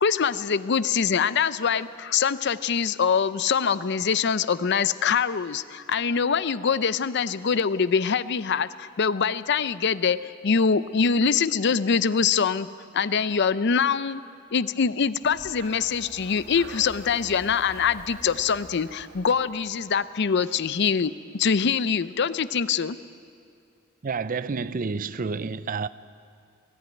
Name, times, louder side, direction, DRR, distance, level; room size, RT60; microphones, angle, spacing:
voice 1, 0.0-12.7 12.9-14.2 14.5-23.0, left 6 dB, 55° left, 0.5 m, -24 dB
Breathing, 15.2-20.1, right 2 dB, 70° right, 1.8 m, -46 dB
voice 2, 24.0-25.9, right 4 dB, 40° right, 0.5 m, -29 dB
20.0 x 14.0 x 9.3 m
head